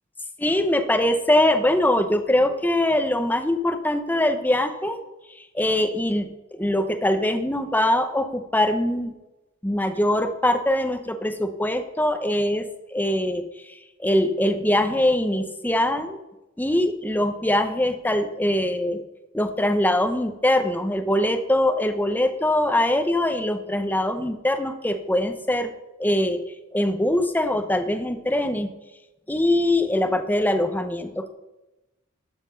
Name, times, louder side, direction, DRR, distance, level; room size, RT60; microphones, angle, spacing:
voice 1, 0.4-5.0 5.4-9.1 9.6-16.2 16.6-19.0 19.3-25.7 26.0-26.4 26.7-28.7 29.3-31.3, left 1 dB, 10° left, 7 dB, 0.7 m, -22 dB
12.5 x 5.8 x 5.7 m, 1.0 s
head